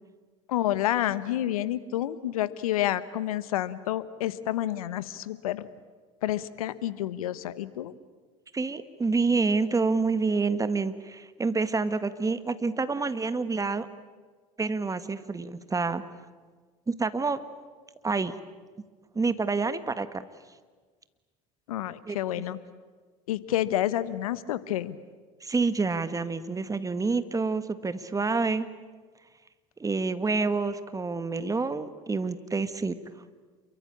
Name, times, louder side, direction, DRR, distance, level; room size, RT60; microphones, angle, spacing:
voice 1, 0.5-5.7 6.2-7.9 21.7-22.6 23.3-25.0, left 13 dB, 80° left, 16 dB, 1.1 m, -29 dB
voice 2, 8.5-13.9 14.6-16.0 16.9-17.4 18.0-18.3 19.2-20.2 22.1-22.4 25.4-28.7 29.8-33.0, right 4 dB, 20° right, 12 dB, 1.7 m, -28 dB
28.0 x 23.0 x 8.7 m, 1.4 s
hypercardioid pair, 75°, 18 cm